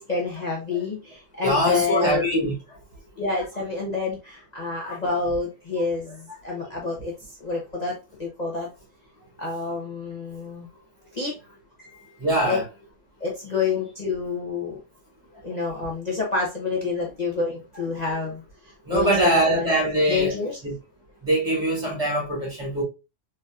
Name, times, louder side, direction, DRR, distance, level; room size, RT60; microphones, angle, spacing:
voice 1, 0.1-2.2 3.2-8.7 9.4-10.7 11.1-11.4 11.8-12.6 13.2-14.8 15.4-19.7 20.1-20.6, left 4 dB, 35° left, 1.0 m, -28 dB
voice 2, 1.4-2.5 4.8-5.0 12.2-12.6 18.9-20.3 20.6-20.7 21.2-22.8, right 1 dB, 30° right, 1.8 m, -22 dB
4.0 x 3.3 x 2.4 m
omnidirectional pair, 1.3 m